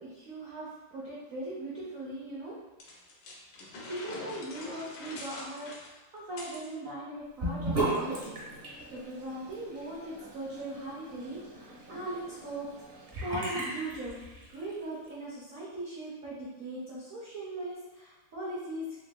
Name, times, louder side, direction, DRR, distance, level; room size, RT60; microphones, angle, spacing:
voice 1, 0.0-2.6 3.6-12.7 13.2-19.0, right 1 dB, 75° right, -7 dB, 0.7 m, -40 dB
sound 1, 2.8-6.7, left 2 dB, 75° left, 1.3 m, -44 dB
Sink (filling or washing) / Bathtub (filling or washing), 7.4-14.7, right 2 dB, 40° right, 0.9 m, -37 dB
3.8 x 3.2 x 2.2 m, 1.1 s
omnidirectional pair, 2.3 m